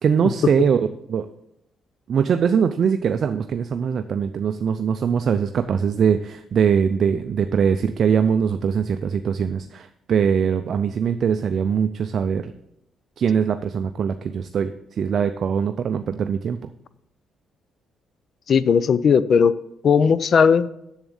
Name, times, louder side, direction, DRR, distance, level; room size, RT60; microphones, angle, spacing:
voice 1, 0.0-0.8 1.1-1.3 2.1-12.5 13.2-14.7 15.0-16.6, right 7 dB, 55° right, 9 dB, 0.4 m, -22 dB
voice 2, 18.5-19.5 19.8-20.7, left 6 dB, 55° left, 17 dB, 0.5 m, -17 dB
7.3 x 7.2 x 7.1 m, 0.81 s
cardioid pair, 90°, 0 cm